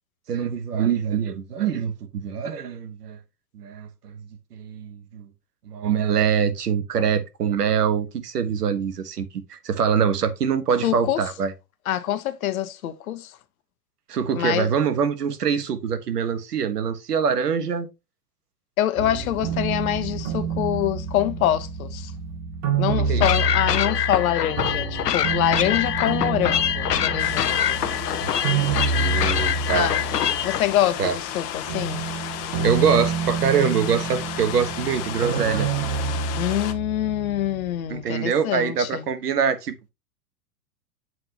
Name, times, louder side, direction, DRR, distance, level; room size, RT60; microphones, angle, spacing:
voice 1, 0.3-3.2 3.5-4.2 4.5-5.3 5.6-11.5 14.1-17.9 23.1-23.2 28.2-29.9 31.0-31.2 32.6-35.7 37.9-39.9, right 7 dB, 75° right, 1.4 m, -24 dB
voice 2, 10.8-11.2 11.9-13.4 14.3-14.7 18.8-22.1 22.8-27.8 29.7-32.1 36.4-39.0, left 12 dB, 60° left, 1.1 m, -25 dB
sound 1, 19.0-31.0 31.3-37.7, right 6 dB, 45° right, 2.1 m, -28 dB
sound 2, 23.2-30.6, left 10 dB, 80° left, 0.8 m, -25 dB
sound 3, 27.2-36.7, left 11 dB, 35° left, 1.0 m, -33 dB
7.8 x 5.6 x 2.9 m
hypercardioid pair, 110°, 47 cm